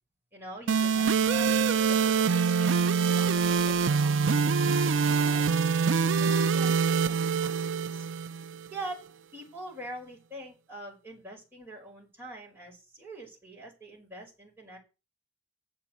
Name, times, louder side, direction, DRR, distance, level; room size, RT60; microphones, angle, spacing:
voice 1, 0.3-5.6 6.2-7.5 7.9-8.1 8.7-14.8, right 1 dB, 10° right, -4 dB, 5.7 m, -44 dB
sound 1, 0.7-8.7, right 5 dB, 80° right, 0.5 m, -25 dB
8.7 x 7.5 x 8.2 m, 0.29 s
head